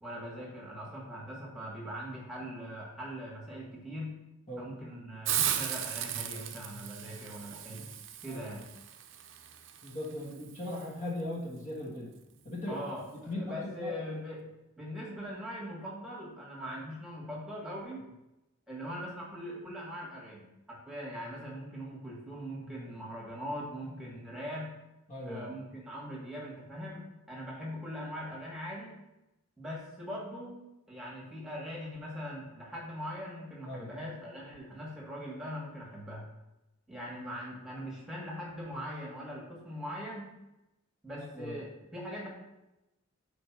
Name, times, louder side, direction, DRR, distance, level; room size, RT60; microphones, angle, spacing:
voice 1, 0.0-4.1 4.6-7.9 8.2-8.6 12.7-14.5 14.8-18.1 18.7-24.7 25.3-28.9 29.6-30.6 30.9-36.3 36.9-40.3 41.0-42.3, equal, 5° right, -5 dB, 1.8 m, -41 dB
Hiss, 5.2-10.9, right 10 dB, 55° right, 0.6 m, -36 dB
voice 2, 9.8-12.1 12.4-12.8 13.3-13.9 16.7-16.8 25.1-25.6 33.6-33.9 41.2-41.5, left 1 dB, 35° left, -4 dB, 1.5 m, -38 dB
5.1 x 4.6 x 6.0 m, 0.95 s
head